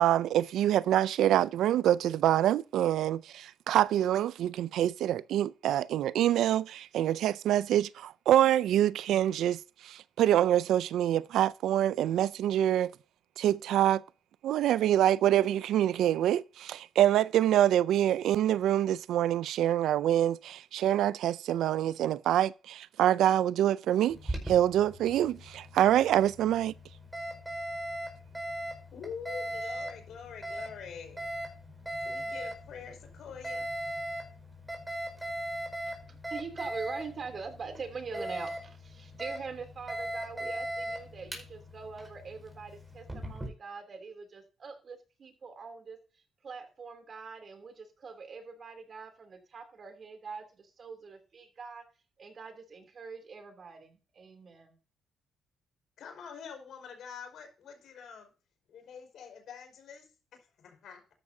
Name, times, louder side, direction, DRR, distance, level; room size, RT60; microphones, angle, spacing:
voice 1, 0.0-12.9 13.4-14.0 14.4-26.7, right 11 dB, 80° right, 0.4 m, -26 dB
Alarm, 24.1-43.5, right 1 dB, 10° right, 5.1 m, -39 dB
voice 2, 28.9-31.3 32.0-33.7 56.0-58.3 58.7-60.0 60.3-61.0, left 6 dB, 70° left, 4.7 m, -45 dB
voice 3, 36.1-46.0 46.4-51.8 52.2-54.8, right 5 dB, 45° right, 2.9 m, -43 dB
13.0 x 10.5 x 2.8 m
cardioid pair, 90°, 0 cm